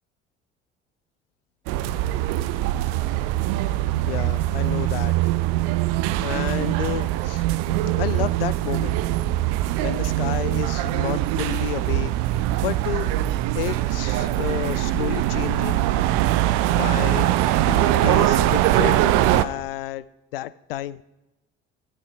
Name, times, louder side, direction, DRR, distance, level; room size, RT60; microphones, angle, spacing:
sound 1, 1.7-19.4, right 14 dB, 60° right, 0.6 m, -22 dB
voice 1, 4.0-5.1 6.2-7.4 8.0-9.0 9.8-12.1 12.4-13.1 13.5-15.8 16.7-17.3 17.7-20.0 20.3-21.0, left 13 dB, 75° left, 18 dB, 0.4 m, -31 dB
14.0 x 5.8 x 4.7 m, 0.96 s
figure-of-eight pair, 55°, 29 cm